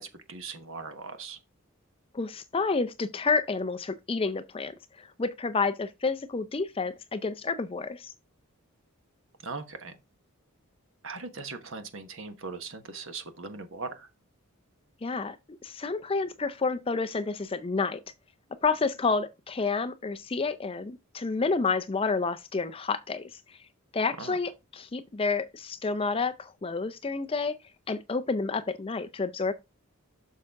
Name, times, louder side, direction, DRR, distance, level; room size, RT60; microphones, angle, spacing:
voice 1, 0.0-1.4 9.4-10.0 11.0-14.1 24.2-24.4, right 4 dB, 60° right, 1.3 m, -39 dB
voice 2, 2.1-8.1 15.0-15.4 15.6-18.0 18.6-23.3 23.9-27.6 27.9-29.5, left 4 dB, 25° left, 0.4 m, -29 dB
6.5 x 6.4 x 3.6 m
head